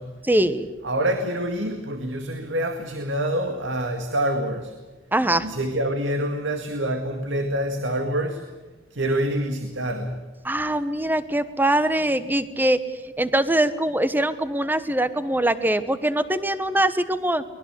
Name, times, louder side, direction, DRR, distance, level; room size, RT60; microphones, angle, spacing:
voice 1, 0.3-0.7 5.1-5.5 10.4-12.8 13.2-17.4, right 1 dB, 10° right, 13 dB, 1.1 m, -22 dB
voice 2, 0.8-4.7 5.4-8.5 8.9-10.2, right 1 dB, 85° right, 6 dB, 2.0 m, -26 dB
23.5 x 20.5 x 8.3 m, 1.2 s
head